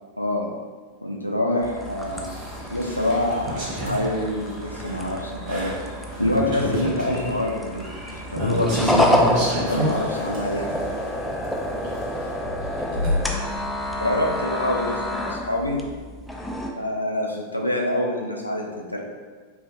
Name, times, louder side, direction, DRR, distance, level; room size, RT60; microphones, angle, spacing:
voice 1, 0.2-0.5 1.0-2.4 2.7-5.7 6.2-7.9 8.3-9.1 9.6-10.8 14.0-15.8 16.8-19.0, left 1 dB, 90° left, -1 dB, 0.4 m, -26 dB
sound 1, 1.6-16.7, equal, 5° left, 0.4 m, -28 dB
sound 2, 1.8-14.4, equal, 50° right, 1.3 m, -30 dB
4.5 x 2.2 x 2.5 m, 1.5 s
figure-of-eight pair, 90°, 0 cm